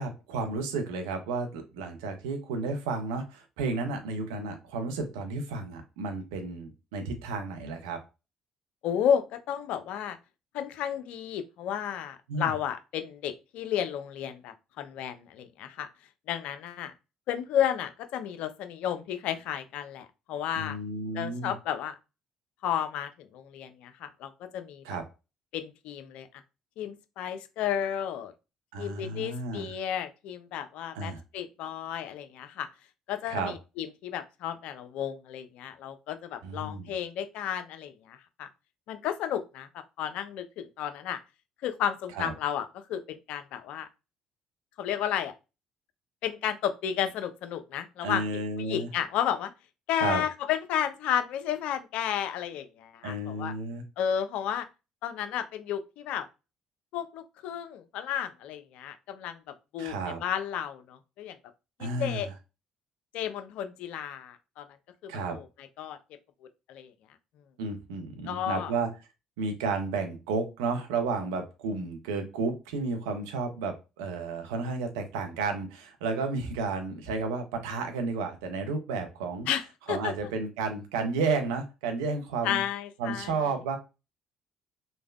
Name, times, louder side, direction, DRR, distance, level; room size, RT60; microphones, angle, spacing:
voice 1, 0.0-8.0 12.3-12.5 20.6-21.5 24.8-25.0 28.7-29.7 30.9-31.2 33.3-33.5 36.4-36.9 42.1-42.3 48.0-48.9 50.0-50.2 53.0-53.8 59.8-60.2 61.8-62.3 65.1-65.4 67.6-68.9 69.4-79.5 79.9-82.6 83.0-83.8, right 4 dB, 75° right, 0.5 m, -32 dB
voice 2, 8.8-10.2 10.5-15.9 16.3-16.9 17.3-20.8 21.1-21.9 22.6-24.8 25.5-26.3 26.8-28.3 28.8-32.7 33.1-38.5 38.9-41.2 41.6-43.9 44.8-45.3 46.2-48.2 48.6-49.5 49.9-53.5 54.0-54.7 55.0-56.3 56.9-61.4 61.8-62.3 63.1-64.7 65.0-65.4 65.8-66.0 66.7-66.9 68.3-68.7 79.5-80.1 82.4-83.4, left 9 dB, 65° left, 0.4 m, -32 dB
3.2 x 2.1 x 2.3 m
hypercardioid pair, 50°, 2 cm